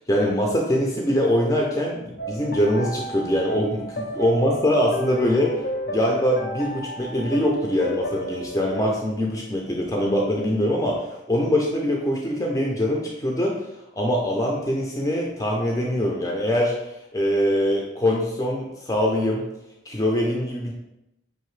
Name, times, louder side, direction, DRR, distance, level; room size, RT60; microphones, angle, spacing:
voice 1, 0.1-5.6 5.9-13.7 13.9-19.5 19.9-20.7, equal, 20° left, -1 dB, 0.4 m, -23 dB
sound 1, 2.2-8.8, equal, 60° left, 0.7 m, -33 dB
5.6 x 2.6 x 3.1 m, 0.89 s
head